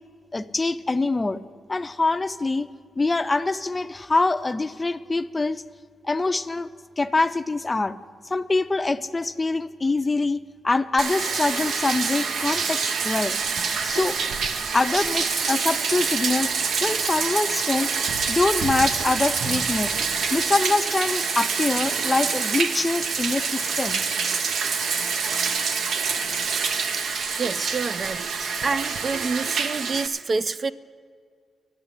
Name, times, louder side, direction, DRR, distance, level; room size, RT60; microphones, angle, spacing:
voice 1, 0.3-1.4 1.7-2.7 3.0-5.6 6.0-6.7 7.0-8.0 8.3-13.4 13.8-14.2 14.7-16.5 16.8-17.9 18.3-19.9 20.3-24.0, left 3 dB, 25° left, 13 dB, 0.5 m, -24 dB
Bathtub (filling or washing), 11.0-30.1, right 5 dB, 75° right, 0.8 m, -26 dB
voice 2, 27.4-28.3 28.6-30.7, right 4 dB, 45° right, 14 dB, 0.4 m, -27 dB
12.5 x 7.4 x 9.6 m, 2.1 s
cardioid pair, 85°, 0 cm